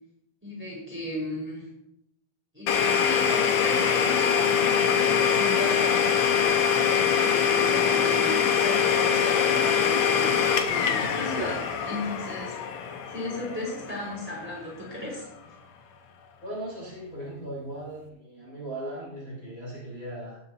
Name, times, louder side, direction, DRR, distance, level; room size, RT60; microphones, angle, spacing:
voice 1, 0.4-1.7 2.5-6.0 6.8-10.4 10.9-11.5 11.8-12.6 13.1-15.2, left 1 dB, 5° right, -5 dB, 4.5 m, -35 dB
Domestic sounds home sounds, 2.7-14.3, left 7 dB, 70° left, 1.7 m, -23 dB
sound 1, 3.7-4.0 6.3-6.6 7.9-8.0 8.5-8.8 10.8-11.7, right 3 dB, 40° right, 5.4 m, -40 dB
voice 2, 16.4-20.4, right 1 dB, 25° left, -8 dB, 4.3 m, -38 dB
18.5 x 9.5 x 2.9 m, 0.81 s
omnidirectional pair, 4.2 m